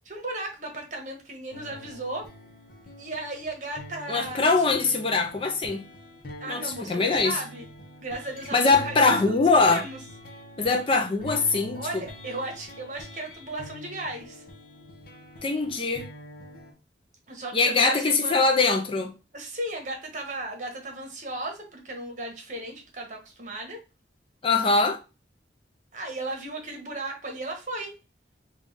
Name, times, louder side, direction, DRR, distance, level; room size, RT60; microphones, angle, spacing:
voice 1, 0.0-2.3 3.0-4.5 4.7-5.1 6.4-7.6 8.0-9.4 9.7-10.0 11.7-14.4 17.3-18.4 19.3-23.8 25.9-27.9, right 2 dB, 45° right, 1.1 m, -35 dB
sound 1, 1.5-16.7, left 1 dB, 50° left, 0.8 m, -45 dB
voice 2, 4.1-5.8 6.5-7.4 8.5-9.8 10.6-11.8 15.4-16.1 17.5-19.1 24.4-25.0, left 3 dB, 30° left, 0.5 m, -22 dB
3.6 x 2.4 x 3.9 m
head